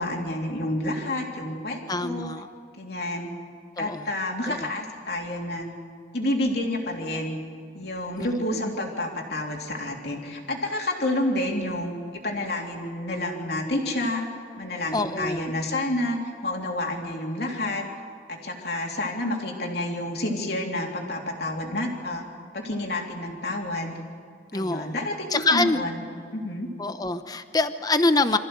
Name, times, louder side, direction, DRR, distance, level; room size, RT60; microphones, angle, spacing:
voice 1, 0.0-2.3 2.8-3.3 3.8-5.7 6.1-7.4 7.7-14.3 14.6-17.8 18.3-22.2 22.5-23.9 24.5-26.0 26.3-26.7, left 1 dB, 55° left, 0 dB, 3.3 m, -29 dB
voice 2, 1.9-2.5 3.8-4.1 4.5-4.7 8.2-8.3 14.9-15.5 24.5-25.0 25.3-25.8 26.8-28.4, left 2 dB, 20° left, 10 dB, 0.8 m, -25 dB
25.5 x 15.0 x 7.9 m, 2.2 s
head